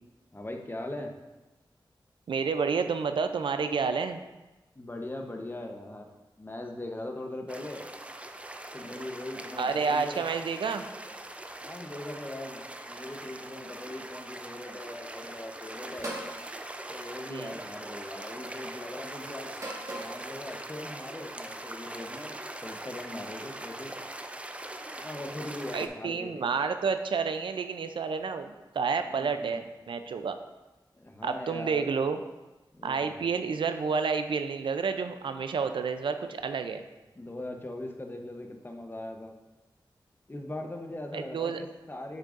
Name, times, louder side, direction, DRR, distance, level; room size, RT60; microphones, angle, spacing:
voice 1, 0.3-1.1 4.8-7.8 8.7-10.2 11.6-12.6 12.9-16.1 16.9-19.5 19.9-24.0 25.0-26.5 29.0-29.6 30.9-31.9 32.7-33.3 37.2-39.3 40.3-42.2, left 1 dB, 25° left, 3 dB, 0.8 m, -40 dB
voice 2, 2.3-4.2 9.6-10.8 17.3-17.5 25.7-29.6 29.9-30.4 31.2-32.2 32.8-36.8 41.1-41.6, right 5 dB, 80° right, 8 dB, 0.4 m, -30 dB
sound 1, 7.5-25.9, right 1 dB, 15° right, 0.4 m, -42 dB
sound 2, 16.0-16.4 17.6-17.9 19.5-20.2, right 1 dB, 40° right, 1.4 m, -38 dB
6.7 x 6.0 x 2.5 m, 1.1 s
wide cardioid pair, 65°, 8 cm